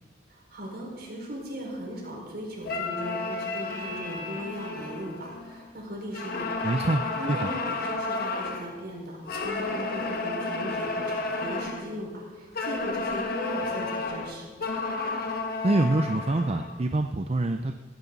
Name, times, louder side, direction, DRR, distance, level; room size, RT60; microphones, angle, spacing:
voice 1, 0.3-6.8 7.2-14.5, equal, 55° right, -2 dB, 5.2 m, -38 dB
sound 1, 2.6-5.7 6.1-8.7 9.3-11.9 12.5-16.8, left 3 dB, 50° left, 1.5 m, -32 dB
voice 2, 6.6-7.5 15.6-17.8, right 2 dB, 35° right, 7 dB, 0.5 m, -26 dB
16.5 x 16.0 x 4.1 m, 1.3 s
head